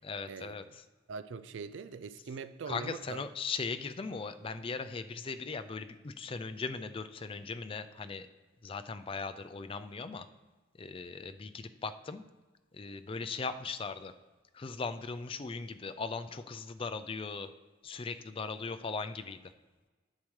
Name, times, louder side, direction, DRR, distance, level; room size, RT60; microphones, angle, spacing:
voice 1, 0.0-0.8 2.7-8.3 8.6-10.3 10.8-12.2 12.7-14.1 14.5-17.5 17.8-19.5, left 4 dB, 30° left, 10 dB, 0.4 m, -39 dB
voice 2, 1.1-3.2, right 5 dB, 75° right, 13 dB, 0.4 m, -42 dB
10.5 x 7.5 x 3.2 m, 1.3 s
head